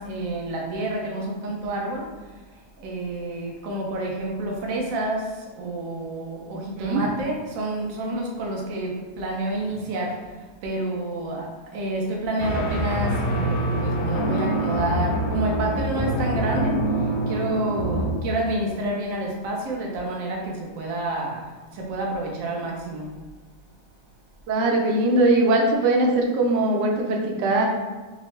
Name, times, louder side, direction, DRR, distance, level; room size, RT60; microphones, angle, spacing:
voice 1, 0.0-23.1, right 2 dB, 60° right, -1 dB, 1.0 m, -29 dB
sound 1, 12.4-18.1, right 1 dB, 75° left, 1.3 m, -25 dB
voice 2, 24.5-27.7, right 2 dB, 85° right, 0 dB, 1.3 m, -21 dB
5.4 x 2.0 x 3.1 m, 1.3 s
omnidirectional pair, 1.8 m